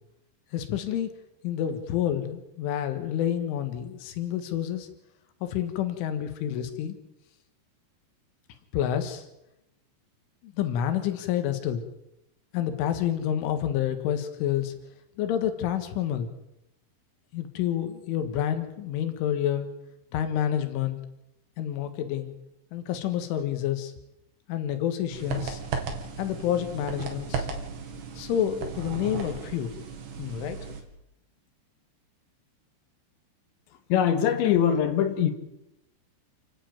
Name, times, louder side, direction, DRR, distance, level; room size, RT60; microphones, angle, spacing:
voice 1, 0.5-1.1 1.4-4.9 5.4-7.0 8.7-9.3 10.4-11.8 12.5-14.7 15.2-16.3 17.3-19.7 20.1-21.0 21.6-22.3 22.7-23.9 24.5-25.6 26.2-27.5 28.2-29.8 30.2-30.6, left 10 dB, 90° left, 4.1 m, -28 dB
sound 1, 25.1-30.8, right 5 dB, 65° right, 4.5 m, -35 dB
voice 2, 33.9-35.3, left 9 dB, 75° left, 3.9 m, -22 dB
29.5 x 11.5 x 9.4 m
omnidirectional pair, 5.5 m